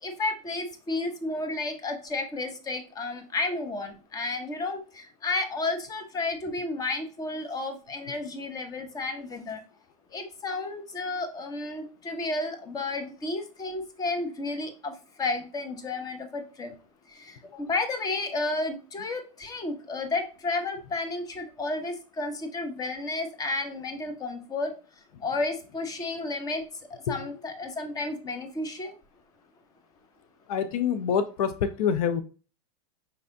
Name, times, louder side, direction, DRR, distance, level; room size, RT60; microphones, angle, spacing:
voice 1, 0.0-9.6 10.1-16.7 17.1-24.7 25.2-26.6 26.9-28.9, left 2 dB, 20° left, 6 dB, 1.0 m, -32 dB
voice 2, 30.5-32.2, left 7 dB, 70° left, 11 dB, 0.6 m, -26 dB
5.5 x 3.2 x 2.6 m, 0.36 s
hypercardioid pair, 120°, 19 cm